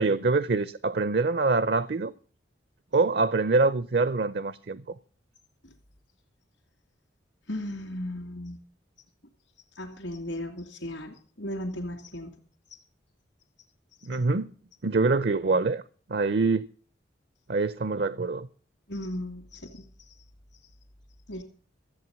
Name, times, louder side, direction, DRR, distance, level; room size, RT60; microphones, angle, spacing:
voice 1, 0.0-2.1 2.9-5.0 14.0-14.5 14.8-15.8 16.1-16.7 17.5-18.5, right 3 dB, 55° right, 0.6 m, -25 dB
voice 2, 7.5-8.6 9.7-12.4 18.9-20.1 21.3-21.4, left 1 dB, 70° left, 2.4 m, -36 dB
14.0 x 8.4 x 6.9 m
head